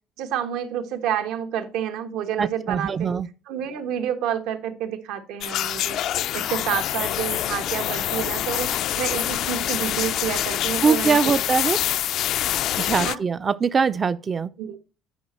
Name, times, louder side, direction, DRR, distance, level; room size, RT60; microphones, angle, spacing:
voice 1, 0.2-3.1 3.5-6.0 6.3-8.7 9.0-11.4 13.0-13.2 14.6-14.8, right 9 dB, 85° right, 1.2 m, -29 dB
voice 2, 2.4-3.3 10.8-11.8 12.8-14.5, right 5 dB, 25° right, 0.3 m, -22 dB
sound 1, 5.4-13.2, left 12 dB, 55° left, 0.3 m, -26 dB
9.9 x 5.2 x 4.3 m
cardioid pair, 155°, 0 cm